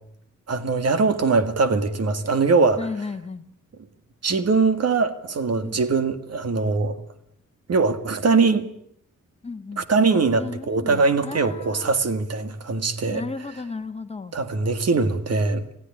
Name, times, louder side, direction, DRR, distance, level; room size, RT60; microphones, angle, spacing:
voice 1, 0.5-2.8 4.2-7.0 7.7-8.7 9.8-13.2 14.3-15.6, right 4 dB, 55° right, 2.0 m, -21 dB
voice 2, 2.8-3.5 5.6-5.8 9.4-9.8 10.1-11.9 13.1-14.4, left 4 dB, 20° left, 1.5 m, -34 dB
28.0 x 16.5 x 9.9 m
wide cardioid pair, 155°, 31 cm